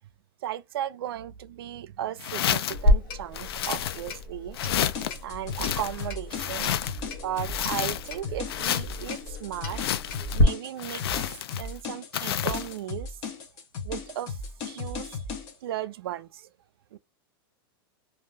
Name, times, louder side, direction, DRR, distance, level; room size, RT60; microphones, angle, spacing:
voice 1, 0.4-4.6 5.2-6.8 7.0-9.8 10.3-13.2 13.8-15.2 15.6-16.5 16.9-17.0, right 12 dB, 75° right, 0.4 m, -36 dB
sound 1, 2.2-2.9 3.3-4.2 4.5-5.2 5.5-7.1 7.4-8.2 8.5-9.1 9.7-10.4 10.8-11.8 12.1-12.7, left 10 dB, 90° left, 0.4 m, -30 dB
Clock, 2.7-10.4, left 1 dB, 60° left, 0.9 m, -30 dB
sound 2, 4.6-15.5, left 4 dB, 35° left, 0.7 m, -36 dB
2.5 x 2.2 x 3.2 m
supercardioid pair, 160°, 13 cm